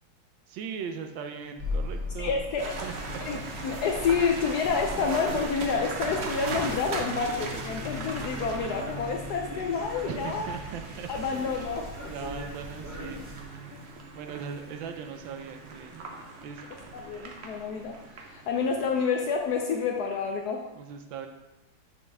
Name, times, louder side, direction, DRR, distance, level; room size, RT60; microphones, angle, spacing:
voice 1, 0.5-2.3 2.8-3.7 10.1-11.1 12.1-13.2 14.1-16.1 16.4-16.6 20.8-21.3, right 7 dB, 75° right, 6 dB, 1.3 m, -39 dB
sound 1, 1.6-13.4, left 1 dB, 10° right, 1.2 m, -40 dB
voice 2, 2.2-2.7 3.2-10.5 11.1-12.3 16.9-20.6, left 5 dB, 80° left, 3 dB, 0.8 m, -29 dB
sound 2, 2.6-19.7, right 2 dB, 90° right, 0.5 m, -39 dB
6.9 x 5.2 x 3.4 m, 0.98 s
omnidirectional pair, 2.3 m